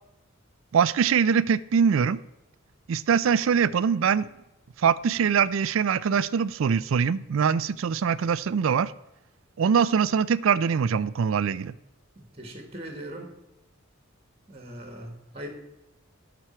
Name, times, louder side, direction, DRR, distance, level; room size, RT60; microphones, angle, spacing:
voice 1, 0.7-2.2 2.9-4.3 4.8-8.9 9.6-11.7, right 6 dB, 70° right, 18 dB, 0.4 m, -23 dB
voice 2, 12.1-13.3 14.5-15.5, right 1 dB, 30° right, 4 dB, 1.5 m, -40 dB
11.5 x 6.1 x 4.3 m, 0.94 s
head